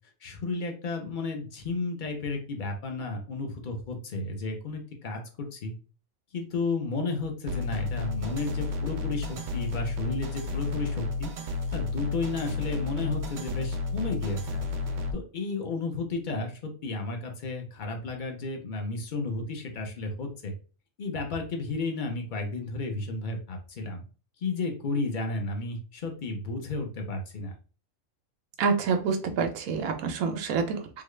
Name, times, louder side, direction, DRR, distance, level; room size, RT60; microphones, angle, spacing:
voice 1, 0.2-5.7 6.3-11.3 11.7-14.7 15.1-20.5 21.0-24.0 24.4-27.5, left 3 dB, 45° left, 3 dB, 0.7 m, -33 dB
sound 1, 7.5-15.1, left 3 dB, 60° right, 0.5 m, -32 dB
voice 2, 28.6-31.0, right 5 dB, 85° right, 6 dB, 1.0 m, -27 dB
3.7 x 2.3 x 3.1 m, 0.37 s
omnidirectional pair, 1.4 m